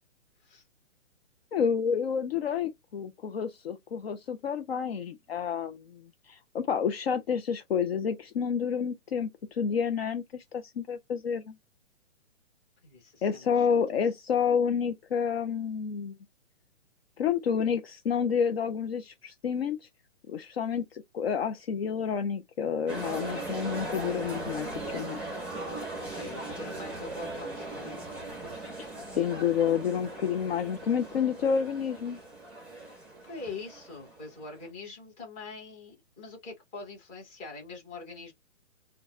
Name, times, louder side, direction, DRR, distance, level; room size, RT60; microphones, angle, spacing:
voice 1, 1.5-11.5 13.2-16.2 17.2-19.9 20.3-25.2 29.2-32.2, left 7 dB, 55° left, 0.6 m, -29 dB
voice 2, 12.8-13.7 26.1-28.1 32.8-38.3, left 3 dB, 15° left, 1.2 m, -44 dB
sound 1, 22.9-34.6, right 2 dB, 5° right, 0.8 m, -39 dB
3.9 x 2.3 x 2.4 m
hypercardioid pair, 155°, 37 cm